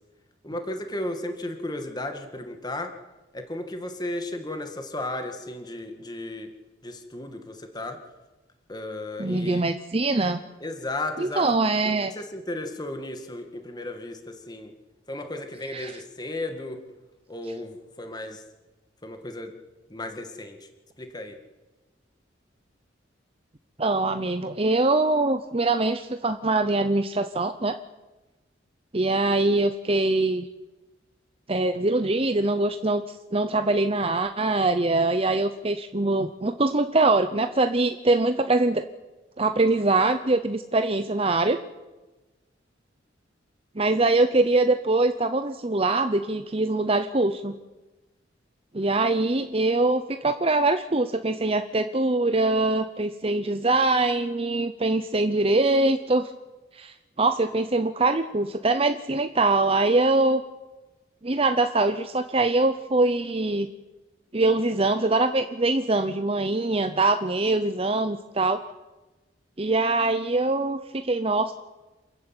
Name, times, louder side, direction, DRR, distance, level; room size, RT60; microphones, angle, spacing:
voice 1, 0.4-2.9 3.3-6.5 6.8-8.0 8.7-9.6 10.6-11.4 12.2-14.2 14.5-14.7 15.1-16.8 17.3-18.4 19.0-19.5 19.9-20.6 21.0-21.3, left 1 dB, 20° left, 6 dB, 2.0 m, -34 dB
voice 2, 9.2-10.4 11.2-12.1 15.6-16.0 17.4-17.5 23.8-27.8 28.9-30.5 31.5-38.8 39.4-41.6 43.8-47.5 48.7-56.3 56.7-60.4 61.2-63.7 64.3-68.6 69.6-71.5, right 2 dB, 30° right, 9 dB, 0.8 m, -23 dB
27.5 x 14.5 x 9.0 m, 1.1 s
head